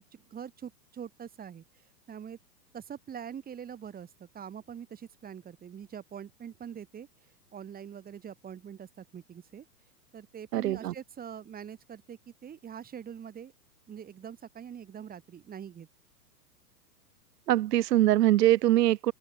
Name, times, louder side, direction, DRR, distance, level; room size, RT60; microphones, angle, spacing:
voice 1, 0.0-2.4 2.7-9.7 10.1-13.5 13.9-15.9, right 8 dB, 20° right, 3.9 m, -44 dB
voice 2, 10.5-10.9 17.5-19.1, right 14 dB, 80° right, 0.7 m, -23 dB
open air
hypercardioid pair, 125°, 48 cm